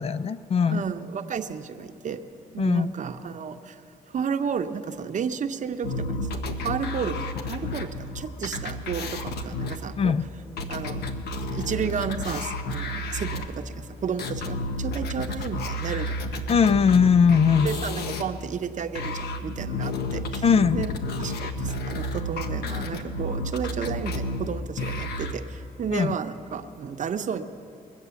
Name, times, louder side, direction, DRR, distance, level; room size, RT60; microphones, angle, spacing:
voice 1, 0.0-0.8 2.6-2.9 10.0-10.2 16.5-17.7 20.4-20.8 25.9-26.1, left 6 dB, 40° left, 15 dB, 0.4 m, -20 dB
voice 2, 0.7-2.2 2.5-3.8 4.1-10.1 10.7-11.1 11.5-16.2 17.6-20.9 21.2-27.4, right 7 dB, 50° right, 8 dB, 0.8 m, -32 dB
sound 1, 5.8-13.5 14.2-18.2 19.0-25.3, left 1 dB, 80° left, 1.0 m, -31 dB
22.0 x 8.1 x 7.0 m, 2.6 s
cardioid pair, 85°, 17 cm